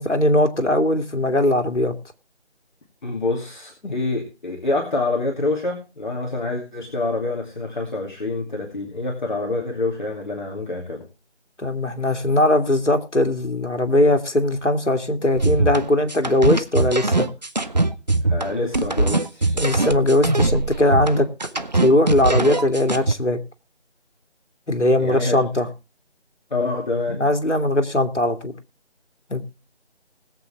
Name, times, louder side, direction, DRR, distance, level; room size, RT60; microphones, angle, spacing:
voice 1, 0.0-1.9 3.8-3.9 11.6-17.3 19.5-21.3 21.7-23.4 24.7-25.7 27.1-28.5 29.3-29.4, left 1 dB, 85° left, 5 dB, 2.3 m, -20 dB
voice 2, 3.0-11.0 18.3-19.6 25.0-25.3 26.5-27.2, left 2 dB, 40° left, -1 dB, 2.6 m, -26 dB
sound 1, 15.4-23.1, right 2 dB, 40° right, 0.6 m, -21 dB
20.5 x 8.0 x 3.4 m, 0.29 s
figure-of-eight pair, 165°, 35 cm